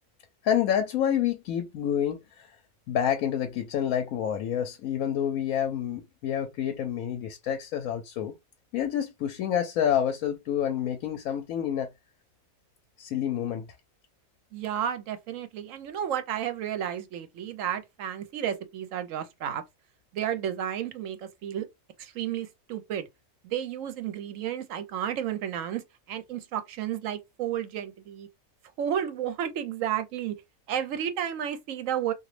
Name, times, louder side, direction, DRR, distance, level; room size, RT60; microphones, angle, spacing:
voice 1, 0.4-2.6 2.9-8.3 8.7-11.9 13.0-13.7, left 9 dB, 85° left, 1.0 m, -28 dB
voice 2, 14.5-19.6 20.1-21.7 22.0-23.1 23.4-25.8 26.1-28.3 28.8-30.4 30.7-32.1, right 10 dB, 75° right, 1.0 m, -32 dB
2.9 x 2.6 x 3.1 m
omnidirectional pair, 1.4 m